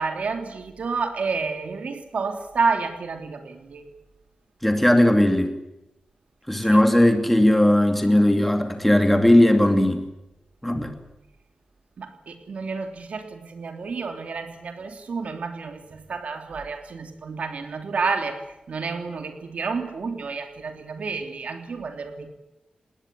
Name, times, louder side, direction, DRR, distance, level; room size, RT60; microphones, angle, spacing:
voice 1, 0.0-3.8 6.6-6.8 12.0-18.4 18.7-22.3, right 4 dB, 65° right, 6 dB, 3.1 m, -30 dB
voice 2, 4.6-5.6 6.5-10.1 10.6-11.0, left 1 dB, 5° left, 6 dB, 2.5 m, -18 dB
19.5 x 19.0 x 9.8 m, 0.95 s
wide cardioid pair, 175°, 2 cm